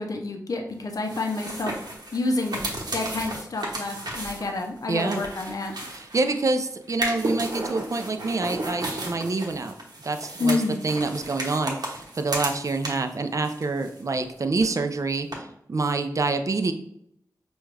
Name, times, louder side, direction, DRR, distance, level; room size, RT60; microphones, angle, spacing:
voice 1, 0.0-1.7 2.1-2.6 2.9-5.7 10.4-10.8, left 3 dB, 60° left, 3 dB, 0.6 m, -28 dB
sound 1, 0.9-6.4 6.9-13.2 13.4-14.3 14.6-14.7 15.3-15.4, right 1 dB, 75° right, 1.0 m, -34 dB
voice 2, 4.9-5.2 6.1-9.7 10.0-16.7, right 3 dB, 50° right, 7 dB, 0.4 m, -27 dB
5.1 x 2.3 x 3.2 m, 0.74 s
cardioid pair, 55°, 7 cm